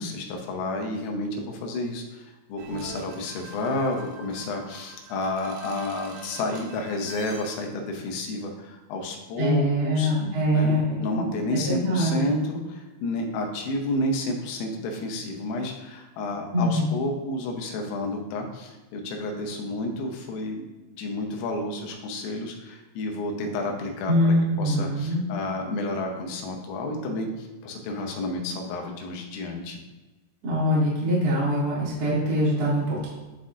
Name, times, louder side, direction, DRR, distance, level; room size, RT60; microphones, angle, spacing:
voice 1, 0.0-10.1 10.5-20.6 20.9-29.8, left 1 dB, 80° left, 2 dB, 3.5 m, -31 dB
sound 1, 2.6-7.7, right 3 dB, 80° right, 3.7 m, -44 dB
voice 2, 9.4-11.0 11.5-12.3 16.5-16.9 24.1-25.2 30.4-33.1, equal, 60° right, -8 dB, 1.0 m, -23 dB
11.5 x 4.0 x 2.5 m, 1.1 s
omnidirectional pair, 5.9 m